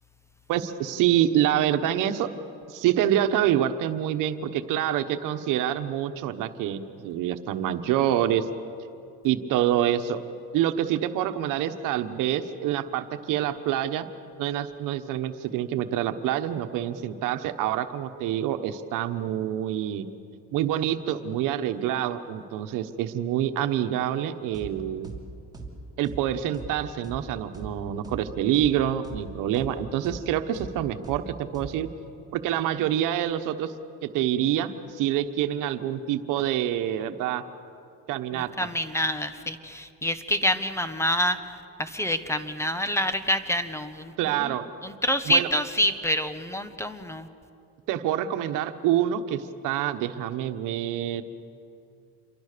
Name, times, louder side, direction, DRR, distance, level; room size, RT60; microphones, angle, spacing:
voice 1, 0.5-2.3 2.7-8.5 9.2-10.2 10.5-14.0 14.4-20.1 20.5-25.1 26.0-31.9 32.3-33.7 34.0-37.4 38.1-38.5 44.2-44.6 45.3-45.5 47.9-51.2, right 11 dB, 85° right, 8 dB, 1.2 m, -26 dB
sound 1, 24.5-24.7 25.0-25.2 25.5-25.7 26.0-26.2 26.5-26.7 27.0-27.2 27.5-27.7 28.0-28.2 28.5-28.7 29.0-29.2 29.5-29.7 30.0-30.2 30.5-30.7 31.0-31.2 31.5-31.7, right 4 dB, 10° right, 3.0 m, -39 dB
voice 2, 38.3-41.4 41.8-44.1 44.4-44.5 44.8-47.3, equal, 10° left, 11 dB, 1.1 m, -27 dB
28.0 x 23.5 x 6.8 m, 2.6 s
cardioid pair, 125°, 31 cm